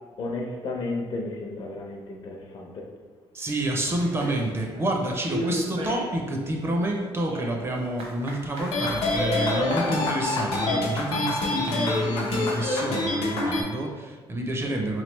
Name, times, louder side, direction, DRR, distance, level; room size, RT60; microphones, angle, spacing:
voice 1, 0.2-2.9, left 2 dB, 50° left, 1 dB, 0.6 m, -33 dB
voice 2, 3.3-15.0, right 1 dB, 25° right, 1 dB, 0.4 m, -28 dB
sound 1, 4.0-4.9 5.2-6.1 6.4-12.7, right 1 dB, 75° right, 0.9 m, -37 dB
sound 2, 8.6-13.6, left 2 dB, 85° left, 0.8 m, -26 dB
3.6 x 3.2 x 3.1 m, 1.4 s
cardioid pair, 145°, 10 cm